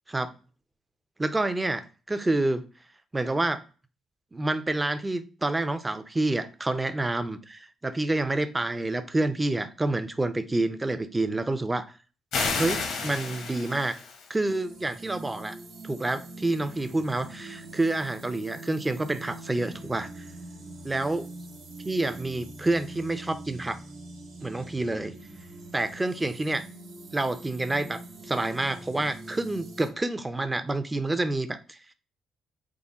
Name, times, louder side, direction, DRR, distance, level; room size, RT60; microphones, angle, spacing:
voice 1, 1.2-2.7 3.1-3.6 4.3-11.9 12.5-13.9 14.3-15.6 15.8-20.2 20.8-21.2 21.8-23.8 24.4-25.2 25.7-26.6 27.1-31.8, right 2 dB, 15° right, 0.4 m, -28 dB
sound 1, 12.3-14.3, left 4 dB, 75° left, 0.9 m, -31 dB
sound 2, 14.4-29.9, right 2 dB, 80° right, 0.9 m, -44 dB
3.6 x 2.1 x 3.9 m
cardioid pair, 90°, 0 cm